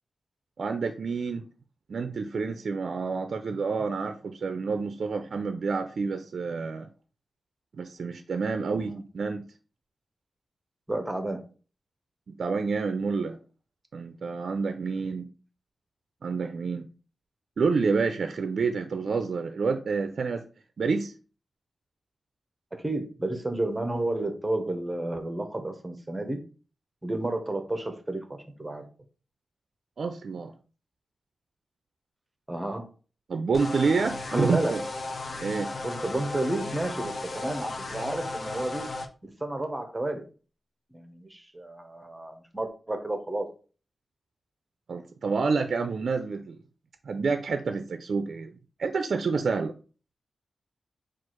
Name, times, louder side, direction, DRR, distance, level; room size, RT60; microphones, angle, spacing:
voice 1, 0.6-1.5 1.9-6.9 7.8-9.4 12.4-13.4 13.9-15.3 16.2-16.9 17.6-20.4 20.8-21.1 30.0-30.5 33.3-34.8 35.4-35.7 44.9-46.6 47.1-49.7, right 4 dB, 65° right, 8 dB, 0.4 m, -28 dB
voice 2, 10.9-11.5 22.7-26.4 27.0-28.9 32.5-32.9 34.3-34.8 35.8-38.9 39.2-40.2 40.9-43.5, right 1 dB, 15° right, 6 dB, 0.7 m, -31 dB
sound 1, 33.5-39.1, left 2 dB, 45° left, 0.6 m, -35 dB
4.5 x 2.4 x 4.4 m, 0.37 s
wide cardioid pair, 110°, 0 cm